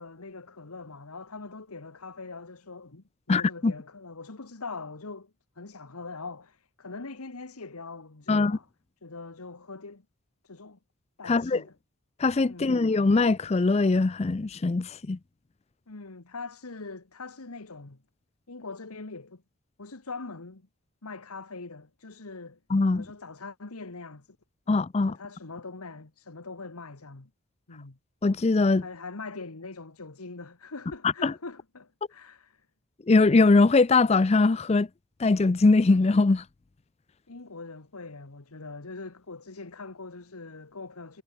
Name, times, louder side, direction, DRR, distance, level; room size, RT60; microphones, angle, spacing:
voice 1, 0.0-8.7 9.0-10.0 10.4-10.8 11.2-11.7 12.5-12.8 15.9-18.0 18.5-19.4 19.8-20.7 21.0-22.6 22.9-24.4 25.1-27.3 27.7-28.0 28.8-32.7 37.3-41.2, left 3 dB, 90° left, 1.5 m, -42 dB
voice 2, 3.3-3.7 8.3-8.6 11.3-11.6 12.2-15.2 22.7-23.1 24.7-25.2 28.2-28.8 31.2-31.3 33.1-34.9 35.2-36.4, left 3 dB, 30° left, 0.4 m, -21 dB
head